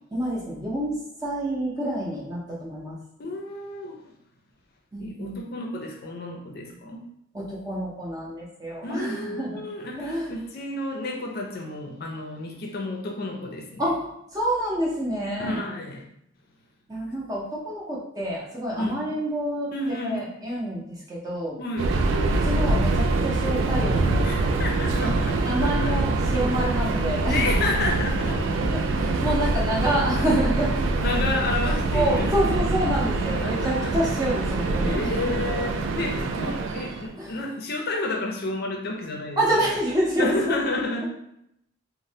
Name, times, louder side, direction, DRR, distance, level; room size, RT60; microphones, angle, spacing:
voice 1, 0.1-3.0 4.9-5.4 7.3-9.7 10.0-10.3 13.8-14.0 14.3-15.6 16.9-21.6 22.3-24.6 24.9-25.1 25.4-27.6 28.7-30.8 31.7-35.4 37.2-37.4 39.4-40.8, right 1 dB, 20° right, -5 dB, 0.6 m, -28 dB
voice 2, 3.2-4.0 5.0-7.1 8.8-13.8 15.4-16.0 18.8-19.0 19.7-20.2 21.6-21.9 24.2-26.0 27.3-28.6 31.0-32.3 33.4-33.9 34.8-39.6 40.2-41.1, left 2 dB, 50° left, 1 dB, 0.5 m, -31 dB
Subway metro underground, 21.8-37.1, right 2 dB, 75° right, 0.3 m, -24 dB
3.1 x 2.1 x 2.7 m, 0.77 s
head